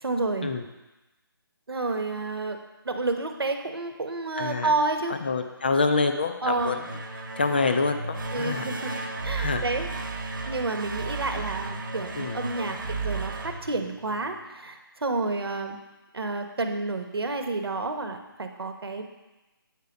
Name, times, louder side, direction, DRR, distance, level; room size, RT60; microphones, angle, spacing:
voice 1, 0.0-0.5 1.7-2.6 2.8-5.1 6.4-6.7 8.3-9.9 10.5-15.8 16.1-19.0, right 3 dB, 85° right, 6 dB, 1.1 m, -30 dB
voice 2, 4.4-4.7 5.1-6.8 7.4-9.1 9.4-9.6 12.1-12.4, left 4 dB, 25° left, 6 dB, 0.4 m, -27 dB
sound 1, 6.5-14.4, right 3 dB, 60° right, 1.0 m, -34 dB
8.3 x 4.7 x 5.2 m, 1.1 s
hypercardioid pair, 165°, 12 cm